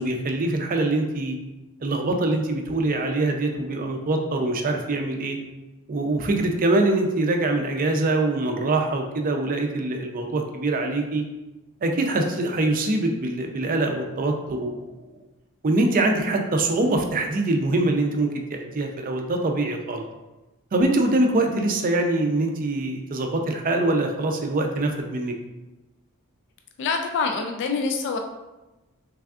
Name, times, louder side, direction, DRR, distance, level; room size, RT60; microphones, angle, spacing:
voice 1, 0.0-1.4 1.8-5.4 5.9-11.2 11.8-15.1 15.6-20.1 20.7-25.3, right 2 dB, 40° right, 3 dB, 0.4 m, -24 dB
voice 2, 26.8-28.2, left 4 dB, 55° left, 4 dB, 0.3 m, -25 dB
3.5 x 3.3 x 2.3 m, 1.1 s
head